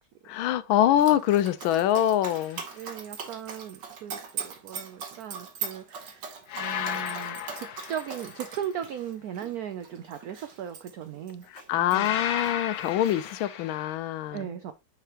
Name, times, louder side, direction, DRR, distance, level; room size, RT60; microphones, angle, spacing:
voice 1, 0.3-2.6 11.7-14.5, left 12 dB, 85° left, 1.4 m, -24 dB
Dog, 1.0-12.1 12.4-13.4, right 6 dB, 65° right, 1.8 m, -41 dB
sound 1, 2.3-2.7 6.5-8.7 11.9-14.0, left 9 dB, 65° left, 1.0 m, -34 dB
voice 2, 2.7-6.3 6.5-11.5 11.7-12.1 14.3-14.7, right 9 dB, 85° right, 0.8 m, -37 dB
6.6 x 4.9 x 2.9 m
omnidirectional pair, 2.2 m